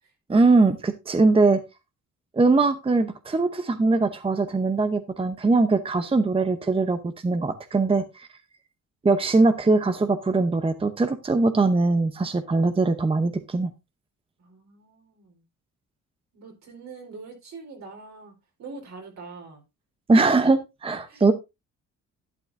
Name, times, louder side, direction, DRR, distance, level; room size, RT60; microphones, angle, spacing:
voice 1, 0.3-1.6 2.3-8.3 9.0-13.7 20.1-21.3, right 3 dB, 20° right, 0.8 m, -21 dB
voice 2, 14.4-15.4 16.3-19.6 21.1-21.3, right 4 dB, 65° right, 4.1 m, -44 dB
11.5 x 9.0 x 2.6 m
cardioid pair, 90°, 30 cm